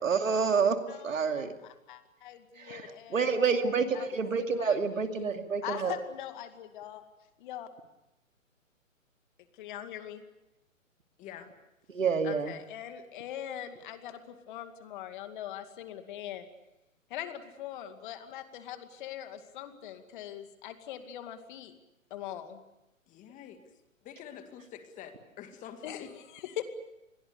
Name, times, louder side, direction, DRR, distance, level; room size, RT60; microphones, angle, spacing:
voice 1, 0.0-0.8 1.0-1.5 2.6-6.0 11.9-12.6, right 5 dB, 70° right, 6 dB, 2.7 m, -28 dB
voice 2, 1.6-3.3 3.9-4.2 4.5-5.3 5.6-7.0 7.4-7.7 9.6-10.2 12.2-16.5 17.1-21.7 22.1-22.6 25.8-26.6, left 11 dB, 35° left, 8 dB, 2.3 m, -42 dB
voice 3, 11.2-11.5 23.1-23.6 24.0-26.1, left 9 dB, 20° left, 8 dB, 2.1 m, -47 dB
29.0 x 22.0 x 6.8 m, 0.90 s
figure-of-eight pair, 130°, 40 cm